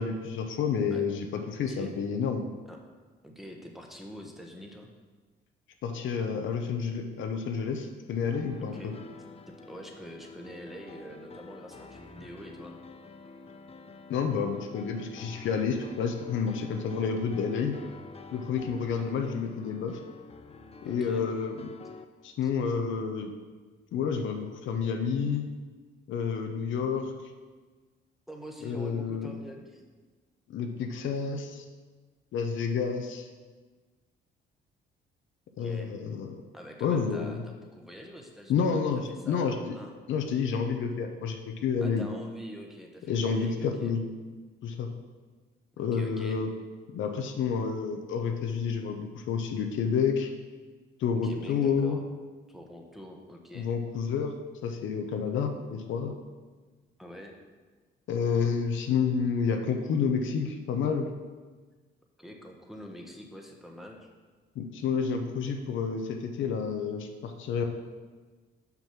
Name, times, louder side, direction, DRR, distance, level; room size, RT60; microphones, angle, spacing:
voice 1, 0.0-2.5 5.8-8.9 14.1-17.8 18.3-20.0 20.8-21.7 22.2-23.3 23.9-25.5 26.1-27.1 28.6-29.3 30.5-31.6 32.3-33.3 35.6-36.4 36.8-37.4 38.5-39.7 40.1-42.1 43.1-44.1 44.6-44.9 45.8-46.5 46.9-50.3 51.0-52.0 53.5-54.3 54.6-56.1 58.1-61.1 64.5-67.6, left 6 dB, 75° left, 5 dB, 0.8 m, -29 dB
voice 2, 3.2-4.9 8.6-9.0 9.5-12.7 20.8-21.3 22.4-22.5 28.3-29.8 35.6-35.9 36.5-39.9 41.8-43.9 45.7-46.4 51.2-52.0 52.5-53.7 57.0-57.4 62.2-64.1, equal, ahead, 1 dB, 1.1 m, -45 dB
sound 1, 8.3-22.0, left 4 dB, 30° left, 0.6 m, -48 dB
5.8 x 5.4 x 5.9 m, 1.4 s
cardioid pair, 90°, 20 cm